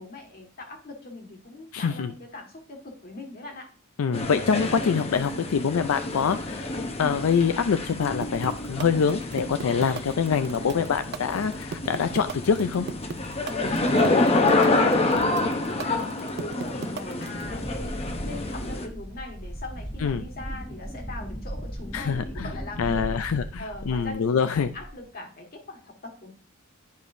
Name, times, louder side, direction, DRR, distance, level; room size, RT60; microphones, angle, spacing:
voice 1, 0.0-3.7 13.5-18.0 18.2-23.2 23.6-26.3, left 2 dB, 45° left, 3 dB, 1.7 m, -41 dB
voice 2, 1.7-2.1 4.0-6.7 7.0-12.9 20.0-20.2 21.9-22.5 22.8-24.7, left 6 dB, 85° left, 10 dB, 0.4 m, -25 dB
sound 1, 4.1-18.9, left 2 dB, 30° left, 0.8 m, -27 dB
sound 2, 8.2-17.4, right 6 dB, 50° right, 0.4 m, -35 dB
Wind, 17.4-24.2 24.5-25.0, equal, 5° left, 1.1 m, -37 dB
10.5 x 5.0 x 2.6 m, 0.39 s
head